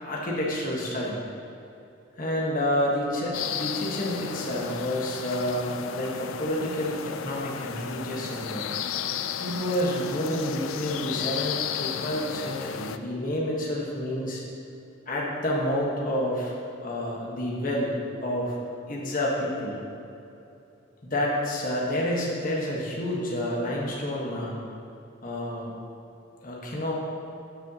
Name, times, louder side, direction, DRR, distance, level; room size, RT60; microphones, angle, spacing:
voice 1, 0.0-1.2 2.2-8.7 9.4-14.4 15.1-17.9 18.2-18.6 18.9-19.8 21.1-24.5 25.2-25.7 26.4-26.9, equal, 40° left, -4 dB, 1.4 m, -29 dB
sound 1, 3.3-13.0, left 8 dB, 80° left, 0.4 m, -34 dB
12.0 x 6.7 x 2.9 m, 2.8 s
head